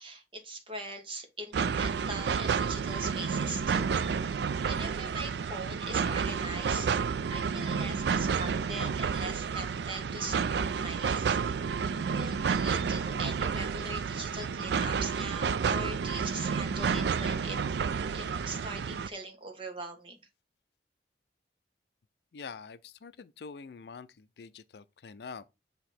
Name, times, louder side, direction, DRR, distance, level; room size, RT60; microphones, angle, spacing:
voice 1, 0.0-4.0 4.3-6.9 7.3-11.6 12.1-17.6 18.1-20.2, right 2 dB, 30° right, 1.4 m, -41 dB
sound 1, 1.5-19.1, right 6 dB, 75° right, 0.4 m, -30 dB
voice 2, 22.3-25.5, left 5 dB, 70° left, 0.4 m, -45 dB
7.9 x 3.0 x 4.3 m
head